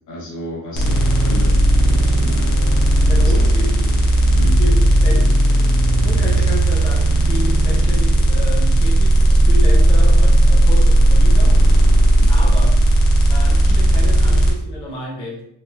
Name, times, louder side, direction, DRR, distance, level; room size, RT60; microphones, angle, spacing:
voice 1, 0.0-2.6 3.2-3.3 4.4-4.6 12.1-12.3, left 1 dB, 60° left, -3 dB, 1.1 m, -33 dB
sound 1, 0.7-14.5, right 1 dB, 80° left, 0.8 m, -14 dB
voice 2, 3.1-3.9 4.4-11.6 11.8-12.0 12.3-12.7 13.3-15.4, left 2 dB, 15° left, -4 dB, 0.5 m, -31 dB
3.2 x 2.4 x 2.4 m, 0.77 s
wide cardioid pair, 160°, 34 cm